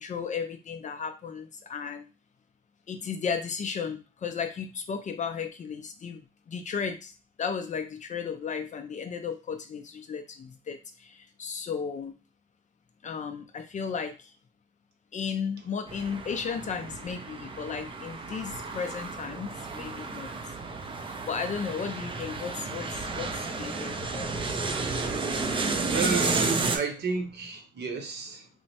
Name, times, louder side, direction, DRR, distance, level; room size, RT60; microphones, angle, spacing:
voice 1, 0.0-2.0 2.9-6.2 6.5-7.1 7.4-10.8 11.1-12.1 13.0-14.1 15.1-20.3 21.3-23.3 23.6-24.6, left 6 dB, 40° left, 0.4 m, -34 dB
sound 1, 15.9-26.8, right 3 dB, 25° right, 0.4 m, -32 dB
voice 2, 25.9-28.5, right 5 dB, 55° right, 0.8 m, -32 dB
3.1 x 2.0 x 2.8 m
cardioid pair, 90°, 20 cm